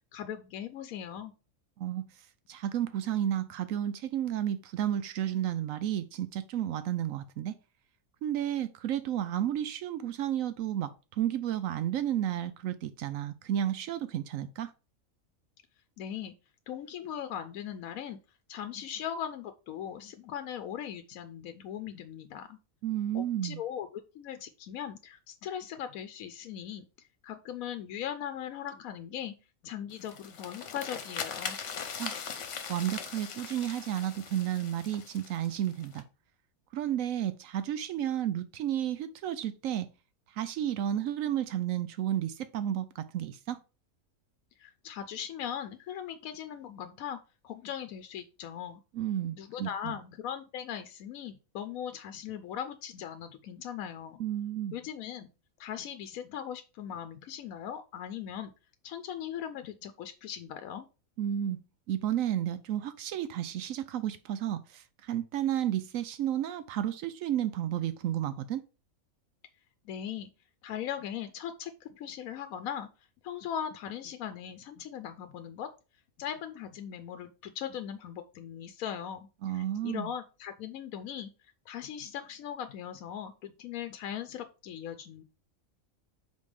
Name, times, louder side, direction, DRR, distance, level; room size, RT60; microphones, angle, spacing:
voice 1, 0.1-1.3 16.0-16.3 16.7-18.2 18.5-22.6 23.1-26.8 27.2-29.3 29.6-31.6 44.6-47.2 47.4-48.8 49.3-54.2 54.7-55.3 55.6-58.5 58.8-60.9 69.9-70.3 70.6-72.9 73.2-75.7 76.2-81.3 81.7-85.2, left 9 dB, 85° left, 1.0 m, -39 dB
voice 2, 1.8-2.1 2.5-7.6 8.2-14.7 22.8-23.6 32.0-32.2 32.7-36.0 36.7-39.9 40.3-43.6 48.9-50.0 54.2-54.8 61.2-61.6 61.9-68.6 79.4-80.1, right 11 dB, 75° right, 0.9 m, -32 dB
sound 1, 29.9-36.0, left 6 dB, 60° left, 1.2 m, -40 dB
5.2 x 4.2 x 4.9 m
omnidirectional pair, 1.4 m